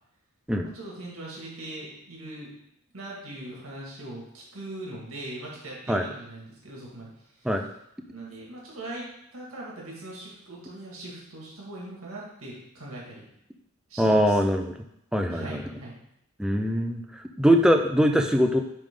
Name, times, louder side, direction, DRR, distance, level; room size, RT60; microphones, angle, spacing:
voice 1, 0.6-2.5 2.9-7.1 7.4-7.5 8.1-9.1 9.3-13.3 13.9-14.4 15.3-16.0 17.4-17.6, right 1 dB, 75° right, -4 dB, 2.1 m, -40 dB
voice 2, 14.0-14.7 15.1-15.6 16.4-18.6, equal, 5° right, 4 dB, 0.5 m, -22 dB
9.9 x 3.6 x 3.8 m, 0.78 s
head